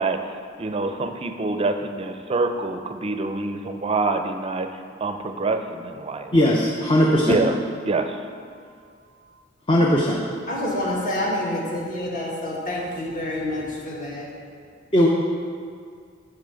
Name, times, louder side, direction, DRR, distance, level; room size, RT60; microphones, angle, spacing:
voice 1, 0.0-4.7 5.0-6.3 7.3-7.6 7.8-8.2, right 3 dB, 30° right, 7 dB, 0.5 m, -26 dB
voice 2, 6.3-7.4 9.7-10.2 14.9-15.1, equal, 25° left, -2 dB, 0.7 m, -18 dB
voice 3, 10.5-14.3, left 1 dB, 45° left, -4 dB, 1.7 m, -27 dB
9.7 x 3.7 x 6.8 m, 2.2 s
head